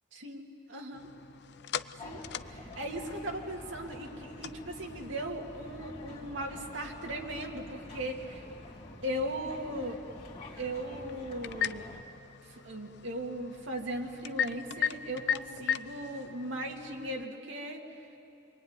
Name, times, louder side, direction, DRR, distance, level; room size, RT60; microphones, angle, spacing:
voice 1, 0.1-1.1 2.0-8.4 9.0-10.0 10.6-11.9 12.5-17.9, right 1 dB, 70° right, 1 dB, 2.4 m, -38 dB
sound 1, 0.9-17.3, left 8 dB, 60° left, 0.5 m, -40 dB
sound 2, 2.0-12.0, left 2 dB, 30° left, 2.5 m, -48 dB
27.0 x 23.0 x 9.7 m, 2.8 s
head